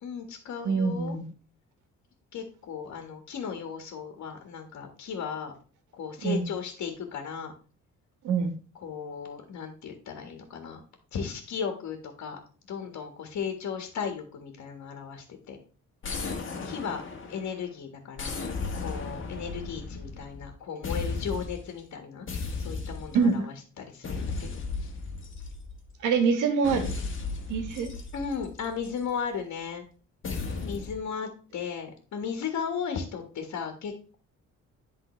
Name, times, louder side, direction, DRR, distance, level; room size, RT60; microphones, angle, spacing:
voice 1, 0.0-1.2 2.3-5.5 5.9-7.5 8.8-10.8 11.1-12.4 12.7-15.6 16.6-17.0 17.3-18.4 18.7-22.3 22.6-24.5 24.8-24.9 28.1-29.8 30.6-34.2, left 6 dB, 65° left, 4 dB, 1.6 m, -36 dB
voice 2, 0.6-1.2 6.2-6.5 8.2-8.5 23.1-23.5 26.0-27.0 27.5-27.9, right 5 dB, 80° right, 7 dB, 1.6 m, -25 dB
sound 1, 16.0-17.6 18.2-20.5 20.8-21.7 22.3-23.3 24.0-25.9 26.6-29.1 30.2-31.0, left 4 dB, 40° left, 1.5 m, -35 dB
10.5 x 3.8 x 3.2 m, 0.38 s
cardioid pair, 90°, 30 cm